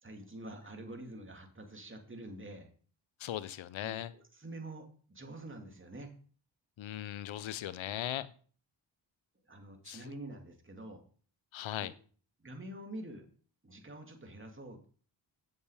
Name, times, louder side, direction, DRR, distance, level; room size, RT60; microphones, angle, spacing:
voice 1, 0.0-2.7 3.8-6.1 9.5-11.0 11.8-11.9 12.4-13.3 13.6-14.9, right 1 dB, 25° right, 3 dB, 2.6 m, -47 dB
voice 2, 3.2-4.1 6.8-8.3 9.8-10.1 11.5-11.9, left 12 dB, 70° left, 16 dB, 0.8 m, -38 dB
8.2 x 7.2 x 5.0 m, 0.43 s
supercardioid pair, 40°, 49 cm